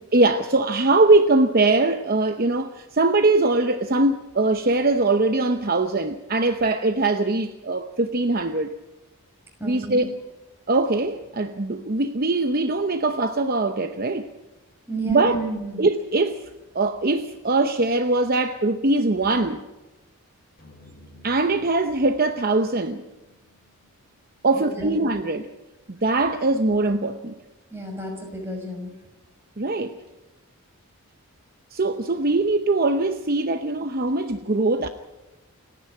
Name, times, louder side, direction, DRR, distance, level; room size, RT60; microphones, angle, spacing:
voice 1, 0.1-8.8 9.6-10.1 10.7-14.3 15.1-15.4 15.8-16.4 16.7-19.6 21.2-23.0 24.4-25.5 25.9-27.3 29.6-30.0 31.7-34.9, right 2 dB, 40° right, 0.8 m, -22 dB
voice 2, 9.6-10.1 14.9-15.8 24.5-25.0 27.7-28.9, right 2 dB, 10° right, 6.0 m, -31 dB
sound 1, 20.6-24.9, left 1 dB, 40° left, 5.3 m, -54 dB
29.0 x 10.0 x 9.2 m
head